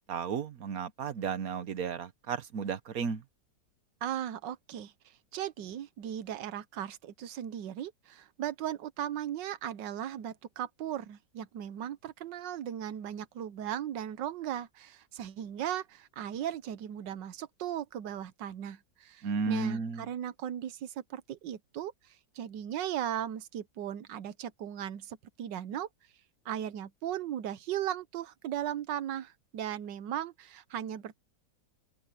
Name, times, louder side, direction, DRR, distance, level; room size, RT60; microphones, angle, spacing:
voice 1, 0.1-3.2 19.2-20.1, right 6 dB, 55° right, 1.4 m, -33 dB
voice 2, 4.0-4.9 5.3-21.9 22.3-25.9 26.4-31.2, right 10 dB, 90° right, 1.6 m, -37 dB
open air
omnidirectional pair, 1.9 m